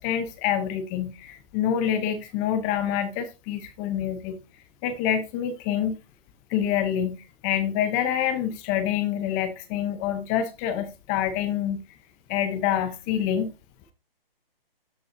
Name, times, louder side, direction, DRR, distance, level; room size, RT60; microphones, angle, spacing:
voice 1, 0.0-4.4 4.8-6.0 6.5-7.2 7.4-11.8 12.3-13.5, left 9 dB, 15° left, 0.7 m, -26 dB
13.5 x 5.2 x 2.7 m
hypercardioid pair, 150°, 29 cm